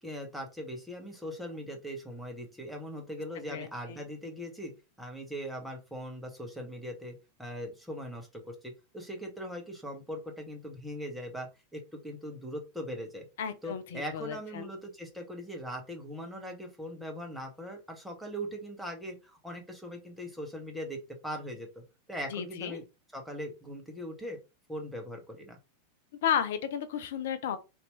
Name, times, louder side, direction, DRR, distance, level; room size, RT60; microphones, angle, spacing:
voice 1, 0.0-13.3 13.6-21.0 21.2-21.8 22.1-22.8 23.1-24.4 24.7-25.6, equal, ahead, 1.0 m, -40 dB
voice 2, 3.5-4.0 13.4-14.7 22.3-22.8 26.2-27.6, left 9 dB, 55° left, 0.5 m, -33 dB
2.9 x 2.6 x 3.2 m
figure-of-eight pair, 90°, 0 cm